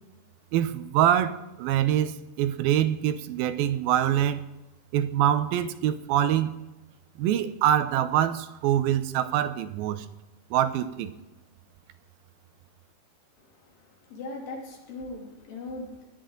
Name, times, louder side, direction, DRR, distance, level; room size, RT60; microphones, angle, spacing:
voice 1, 0.5-4.4 4.9-6.5 7.2-10.1 10.5-11.1, right 11 dB, 85° right, 12 dB, 2.6 m, -24 dB
voice 2, 13.4-16.1, left 2 dB, 70° left, -1 dB, 4.3 m, -40 dB
19.5 x 13.0 x 3.9 m, 0.99 s
omnidirectional pair, 4.2 m